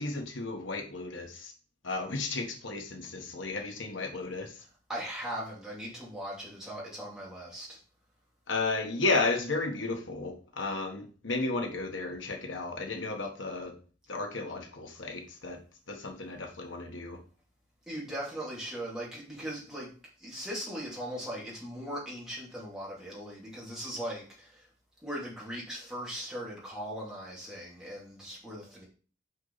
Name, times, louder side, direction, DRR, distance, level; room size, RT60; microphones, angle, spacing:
voice 1, 0.0-1.5 1.8-4.5 8.5-13.7 14.1-15.6 15.9-17.2, left 3 dB, 80° left, 3 dB, 1.3 m, -33 dB
voice 2, 4.9-7.8 17.9-19.9 20.2-24.7 25.0-28.9, equal, 5° right, -6 dB, 2.7 m, -39 dB
6.1 x 5.4 x 4.0 m, 0.39 s
head